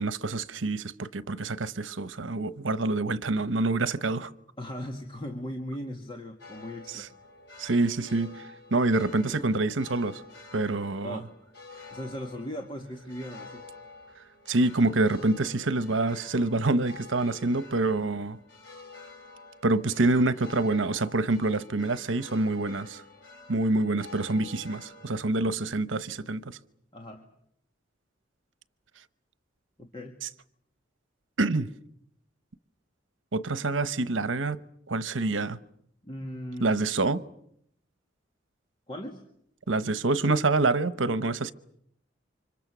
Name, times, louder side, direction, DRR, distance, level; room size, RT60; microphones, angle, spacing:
voice 1, 0.0-4.3 6.9-7.1 7.6-8.4 8.7-10.2 10.5-11.2 14.5-18.4 19.6-23.0 23.5-26.6 30.2-30.3 31.4-31.7 33.3-34.6 34.9-35.6 36.6-37.2 39.7-41.5, right 2 dB, 85° right, 1.0 m, -26 dB
voice 2, 4.6-7.1 11.0-11.3 11.9-13.6 26.9-27.2 29.8-30.2 36.0-36.8 38.9-39.2, equal, 25° left, 1.9 m, -38 dB
sound 1, 6.4-25.2, left 3 dB, 60° left, 4.6 m, -49 dB
29.5 x 25.5 x 6.2 m
head